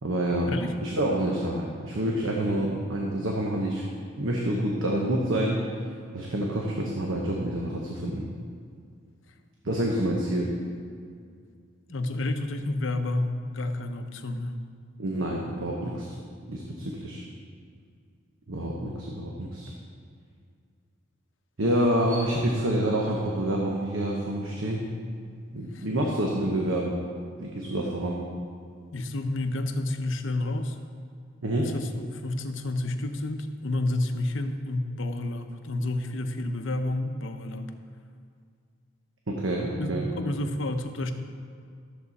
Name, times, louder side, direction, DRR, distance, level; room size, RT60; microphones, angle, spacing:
voice 1, 0.0-0.5 0.8-3.8 4.2-5.6 6.1-8.3 9.6-10.5 15.0-16.1 16.5-17.2 18.5-19.7 21.6-24.9 25.5-27.0 27.4-28.2 31.4-31.7 39.3-40.1, right 1 dB, 80° right, -1 dB, 1.1 m, -27 dB
voice 2, 11.9-14.6 25.7-25.9 28.9-30.8 31.6-37.7 39.8-39.9 40.2-41.1, left 2 dB, 70° left, 7 dB, 0.8 m, -30 dB
13.5 x 7.5 x 4.2 m, 2.2 s
head